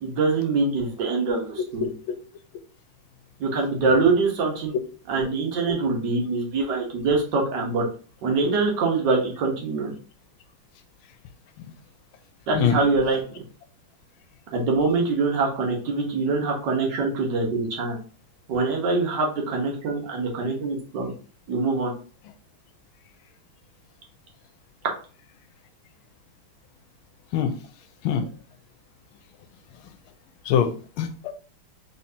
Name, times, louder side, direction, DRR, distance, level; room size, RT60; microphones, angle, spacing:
voice 1, 0.0-1.8 3.4-4.7 5.1-7.8 8.2-9.9 12.5-13.2 14.5-18.0 18.5-21.1 21.5-21.9, right 3 dB, 65° right, 1.6 m, -24 dB
voice 2, 1.8-2.1 11.6-11.7 12.5-12.8 27.3-27.6 28.0-28.3 30.4-31.3, left 8 dB, 90° left, 1.4 m, -24 dB
4.3 x 3.7 x 2.7 m
omnidirectional pair, 2.2 m